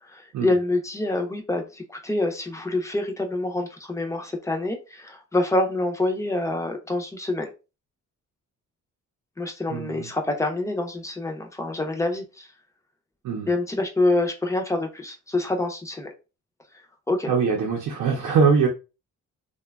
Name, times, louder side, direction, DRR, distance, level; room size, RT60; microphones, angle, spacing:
voice 1, 0.0-7.5 9.4-12.5 13.5-16.1 17.1-17.3, left 2 dB, 10° left, 0.5 m, -26 dB
voice 2, 9.7-10.1 13.2-13.5 17.3-18.7, right 5 dB, 70° right, 0.6 m, -22 dB
2.8 x 2.2 x 2.3 m
cardioid pair, 110°, 31 cm